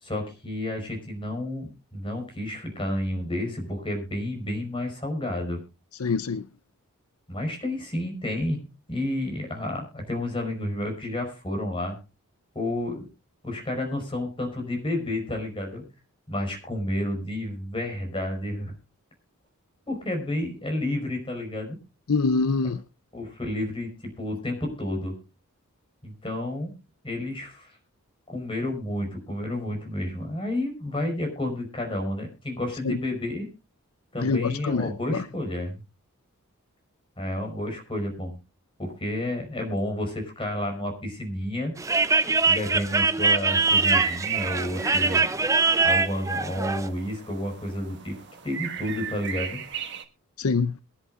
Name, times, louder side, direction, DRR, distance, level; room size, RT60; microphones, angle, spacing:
voice 1, 0.0-5.6 7.3-8.6 8.9-12.0 12.5-13.1 13.4-15.8 16.3-18.7 19.9-21.8 22.6-22.7 23.1-25.1 26.0-26.7 27.0-27.8 28.3-33.5 34.1-35.8 37.2-38.4 38.8-41.7 42.5-45.2 45.8-48.2 48.4-49.6, left 1 dB, 25° left, 4.9 m, -30 dB
voice 2, 6.0-6.4 22.1-22.8 32.8-33.0 34.2-35.2 50.4-50.7, left 4 dB, 80° left, 0.6 m, -25 dB
sound 1, 41.8-46.9, right 4 dB, 15° right, 0.5 m, -23 dB
sound 2, 43.5-50.0, right 8 dB, 50° right, 1.6 m, -36 dB
22.5 x 11.0 x 2.4 m
head